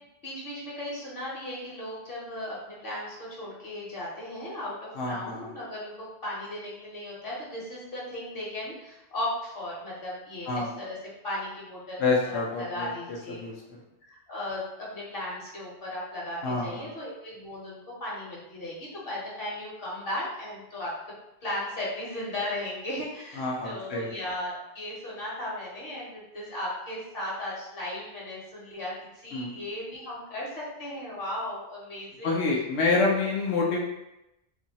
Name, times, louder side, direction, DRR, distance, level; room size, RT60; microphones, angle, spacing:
voice 1, 0.2-11.0 11.2-13.4 14.0-20.9 21.4-28.9 29.2-32.3, left 1 dB, 65° left, -6 dB, 1.1 m, -36 dB
voice 2, 5.0-5.5 10.5-10.7 12.0-13.5 16.4-16.9 23.3-24.1 29.3-29.5 32.2-33.8, left 3 dB, 85° left, -2 dB, 0.9 m, -27 dB
3.0 x 2.7 x 2.7 m, 0.90 s
omnidirectional pair, 1.1 m